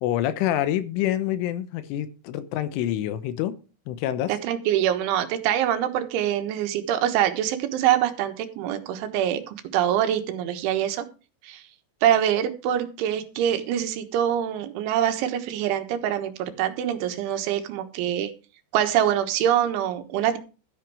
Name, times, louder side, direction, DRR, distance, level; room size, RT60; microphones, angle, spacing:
voice 1, 0.0-3.6 3.9-4.4, left 12 dB, 85° left, 3.4 m, -26 dB
voice 2, 4.3-11.0 11.4-11.6 12.0-18.3 18.7-20.4, right 10 dB, 80° right, 3.7 m, -24 dB
13.0 x 9.0 x 4.8 m
omnidirectional pair, 5.5 m